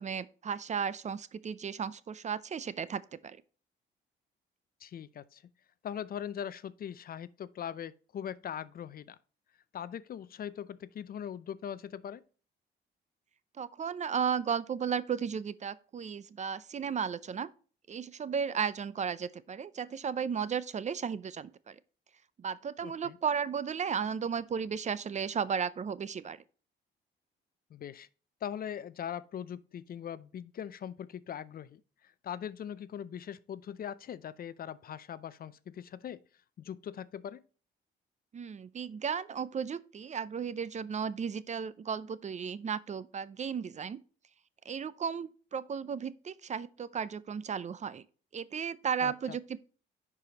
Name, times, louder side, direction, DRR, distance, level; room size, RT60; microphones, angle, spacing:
voice 1, 0.0-3.4 13.6-17.5 17.9-21.8 22.4-26.4 38.3-44.0 44.7-48.0 48.3-49.6, right 7 dB, 35° right, 0.5 m, -34 dB
voice 2, 4.8-5.4 5.8-9.2 9.7-12.2 22.8-23.2 27.7-28.1 28.4-36.2 36.6-37.4 49.0-49.4, left 9 dB, 50° left, 0.5 m, -41 dB
10.5 x 4.8 x 2.9 m
cardioid pair, 90°, 20 cm